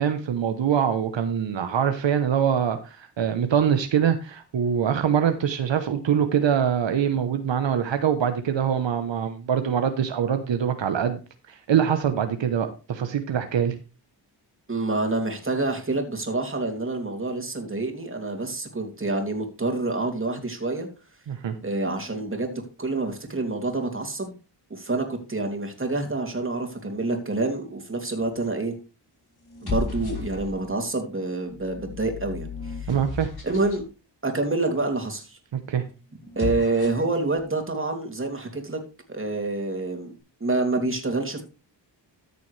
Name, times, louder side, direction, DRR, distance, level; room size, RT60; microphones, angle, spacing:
voice 1, 0.0-11.2 11.5-13.7 21.3-21.5 32.9-33.3 35.7-35.8, right 8 dB, 80° right, 8 dB, 1.1 m, -24 dB
voice 2, 14.7-20.9 21.6-24.3 24.7-28.7 29.6-32.9 33.4-33.8 34.2-35.4 36.4-38.8 39.1-40.1 40.4-41.4, right 2 dB, 30° right, 3 dB, 2.8 m, -27 dB
sound 1, 28.2-28.6 29.4-30.8 31.5-33.8 36.2-37.2, left 4 dB, 55° left, 5.7 m, -34 dB
13.5 x 6.9 x 3.3 m, 0.32 s
cardioid pair, 75°, 44 cm